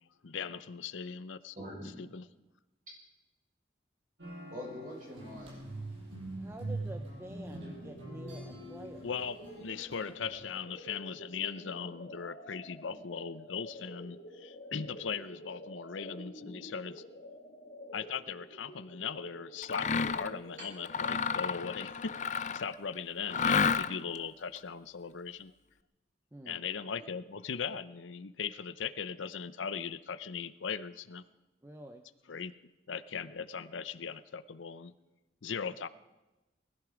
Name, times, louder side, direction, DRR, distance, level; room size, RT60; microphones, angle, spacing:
voice 1, 0.2-1.5 2.0-2.2 9.0-17.0 17.9-25.5 26.5-31.2 32.3-32.5 32.9-34.9 35.4-35.9, left 6 dB, 85° left, 15 dB, 0.6 m, -39 dB
voice 2, 1.6-1.9 4.5-5.5 7.5-7.6 16.5-16.6 23.3-23.4, left 1 dB, 45° right, -3 dB, 7.6 m, -44 dB
sound 1, 4.2-10.5, right 2 dB, 75° right, 6.5 m, -43 dB
voice 3, 6.4-9.1 26.3-26.6 31.6-32.0, right 1 dB, 15° right, 6 dB, 0.6 m, -48 dB
sound 2, 7.0-22.2, equal, 70° left, 2.3 m, -50 dB
Mechanisms, 19.6-20.3 20.8-22.7 23.3-24.2, left 6 dB, 40° left, 0.5 m, -30 dB
20.0 x 14.0 x 5.0 m, 1.1 s
head